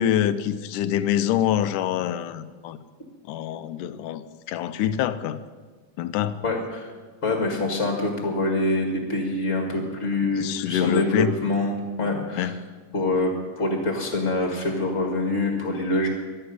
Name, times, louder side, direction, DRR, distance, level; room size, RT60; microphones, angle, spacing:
voice 1, 0.0-2.8 3.3-4.2 4.5-5.4 6.0-6.4 10.4-11.3 12.4-12.6, left 10 dB, 80° left, 13 dB, 2.1 m, -25 dB
voice 2, 6.4-6.9 7.2-12.5 12.9-16.1, left 2 dB, 30° left, 2 dB, 1.5 m, -25 dB
12.0 x 11.5 x 9.5 m, 1.4 s
omnidirectional pair, 3.8 m